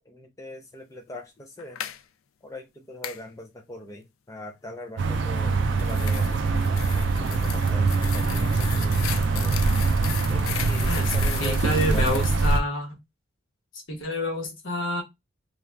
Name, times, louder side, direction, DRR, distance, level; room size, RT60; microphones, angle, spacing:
voice 1, 0.1-1.8 2.4-9.6 10.3-12.3, left 1 dB, 15° left, 0.4 m, -42 dB
sound 1, 1.6-2.0 3.0-3.2 5.4-12.5, left 10 dB, 85° left, 0.4 m, -37 dB
sound 2, 5.0-12.6, right 3 dB, 60° right, 0.4 m, -23 dB
voice 2, 11.4-13.0 13.9-15.0, left 1 dB, 65° left, 1.1 m, -28 dB
2.4 x 2.3 x 3.1 m
head